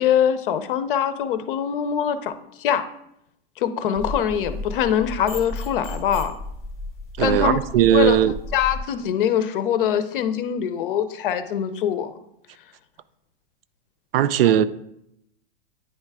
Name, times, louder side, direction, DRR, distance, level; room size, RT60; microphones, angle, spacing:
voice 1, 0.0-2.3 2.6-2.9 3.6-6.4 7.2-7.6 7.9-8.2 8.5-12.1, left 9 dB, 55° left, 0.6 m, -23 dB
sound 1, 4.0-8.8, left 2 dB, 10° left, 0.8 m, -33 dB
voice 2, 7.2-8.3 14.1-14.6, right 11 dB, 65° right, 0.4 m, -18 dB
9.2 x 3.3 x 4.7 m
supercardioid pair, 175°, 31 cm